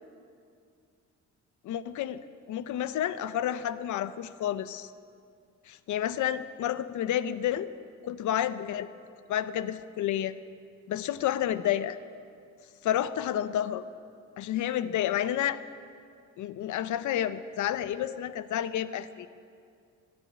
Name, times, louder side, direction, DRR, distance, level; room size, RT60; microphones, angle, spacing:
voice 1, 1.6-4.9 5.7-7.7 8.0-8.9 9.3-10.3 10.9-12.0 12.8-13.8 14.4-15.6 16.4-19.3, left 11 dB, 75° left, 14 dB, 0.8 m, -30 dB
13.5 x 10.5 x 9.9 m, 2.4 s
cardioid pair, 90°, 30 cm